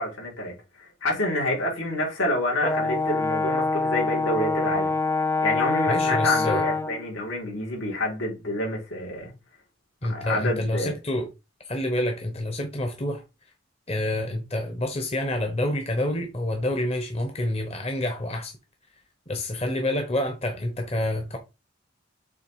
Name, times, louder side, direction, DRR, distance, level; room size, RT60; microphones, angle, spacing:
voice 1, 0.0-4.9 5.4-9.3 10.1-10.9, left 1 dB, 80° left, 3.8 m, -28 dB
Brass instrument, 2.6-7.0, left 3 dB, 15° left, 0.4 m, -25 dB
voice 2, 5.9-6.6 10.0-11.3 11.7-13.2 13.9-18.5 19.3-21.4, left 1 dB, 30° left, 1.0 m, -28 dB
7.4 x 3.5 x 4.7 m
head